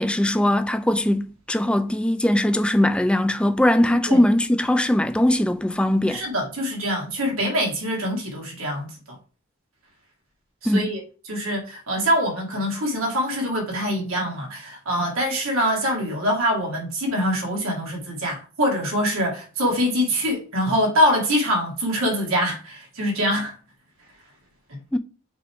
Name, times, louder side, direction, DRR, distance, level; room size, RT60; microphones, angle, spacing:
voice 1, 0.0-6.2 10.7-10.9 24.9-25.0, left 1 dB, 5° left, 0.3 m, -20 dB
voice 2, 3.8-4.2 6.1-8.9 10.6-11.0 11.3-23.5 24.7-25.0, equal, 75° right, 2.3 m, -24 dB
5.9 x 3.7 x 4.5 m
head